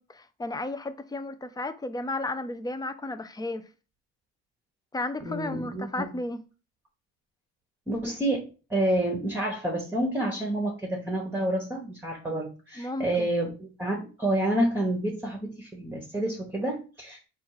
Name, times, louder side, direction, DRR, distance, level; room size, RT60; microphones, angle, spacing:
voice 1, 0.0-3.7 4.9-6.4 12.8-13.3, left 2 dB, 15° left, 0.4 m, -33 dB
voice 2, 5.2-6.1 7.9-17.3, right 1 dB, 5° right, 0.9 m, -29 dB
4.3 x 2.4 x 4.6 m
cardioid pair, 120°, 30 cm